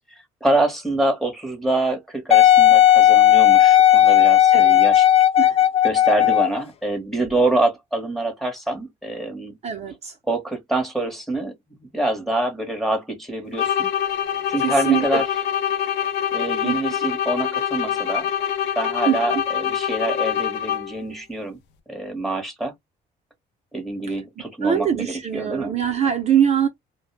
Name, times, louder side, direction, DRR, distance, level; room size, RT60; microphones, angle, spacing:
voice 1, 0.4-5.1 5.8-9.6 10.3-11.5 11.8-13.9 14.5-15.2 16.3-18.3 18.8-21.6 21.9-22.7 23.7-25.7, right 2 dB, ahead, 0.9 m, -25 dB
Wind instrument woodwind instrument, 2.3-6.6 7.3-7.4, left 12 dB, 35° left, 0.3 m, -14 dB
voice 2, 9.6-10.1 14.6-15.2 16.6-16.8 19.1-19.4 24.6-26.7, right 9 dB, 40° right, 0.5 m, -22 dB
sound 1, 13.5-21.1, left 9 dB, 85° left, 0.6 m, -25 dB
2.1 x 2.1 x 3.0 m
cardioid pair, 110°, 17 cm